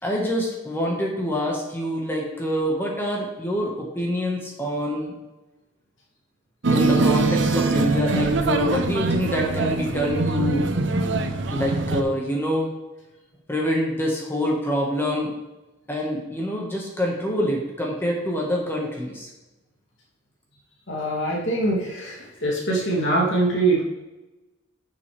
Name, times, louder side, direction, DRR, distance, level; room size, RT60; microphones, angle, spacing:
voice 1, 0.0-5.1 6.7-10.7 11.5-12.7 13.5-15.3 15.9-19.3, equal, 10° left, -2 dB, 1.5 m, -26 dB
sound 1, 6.6-12.0, right 3 dB, 65° right, 0.7 m, -23 dB
voice 2, 20.9-23.8, right 2 dB, 75° left, -4 dB, 2.8 m, -23 dB
9.4 x 7.3 x 3.4 m, 1.0 s
head